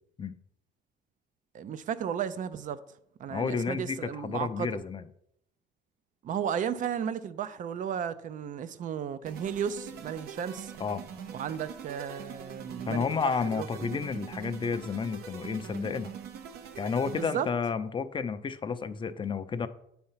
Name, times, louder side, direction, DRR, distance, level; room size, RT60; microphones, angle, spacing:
voice 1, 1.5-2.8 3.2-4.7 6.2-10.7 11.3-14.0 17.1-17.5, right 8 dB, 50° right, 0.6 m, -34 dB
voice 2, 3.3-5.1 10.8-11.0 12.9-16.1 16.8-19.7, left 5 dB, 30° left, 0.5 m, -31 dB
sound 1, 9.3-17.6, right 7 dB, 75° right, 0.9 m, -43 dB
8.8 x 4.3 x 5.6 m
cardioid pair, 110°, 17 cm